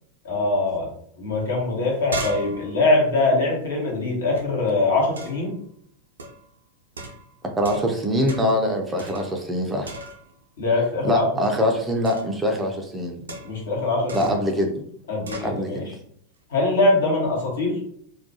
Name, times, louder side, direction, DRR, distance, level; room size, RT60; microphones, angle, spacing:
voice 1, 0.2-0.9 1.2-5.5 10.6-11.2 13.4-14.3 15.1-15.8 16.5-17.8, left 2 dB, 65° left, -2 dB, 0.9 m, -22 dB
sound 1, 1.3-1.4 1.7-4.4 5.2-5.5 6.2-6.5 7.0-8.0 8.3-8.6 9.0-9.6 9.8-10.4 12.0-12.4 13.3-13.7 14.1-14.5 15.3-15.6, right 1 dB, 70° right, 0.4 m, -36 dB
voice 2, 7.6-9.9 11.0-13.1 14.1-14.7 15.4-15.9, equal, 10° right, 2 dB, 0.4 m, -23 dB
2.3 x 2.1 x 2.7 m, 0.65 s
figure-of-eight pair, 90°, 0 cm